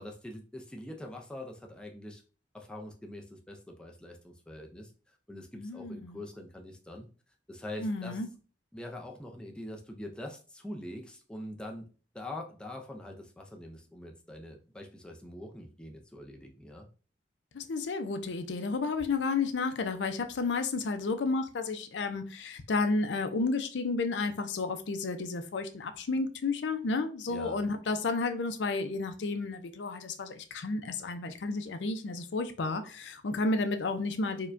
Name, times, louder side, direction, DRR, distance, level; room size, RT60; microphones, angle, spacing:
voice 1, 0.0-2.2 2.5-7.1 7.5-8.2 8.7-11.9 12.1-16.9 27.3-27.7, left 1 dB, 5° left, 1 dB, 0.4 m, -44 dB
voice 2, 5.6-6.2 7.8-8.3 17.5-34.5, left 3 dB, 75° left, 8 dB, 0.5 m, -32 dB
4.5 x 2.2 x 2.5 m, 0.37 s
head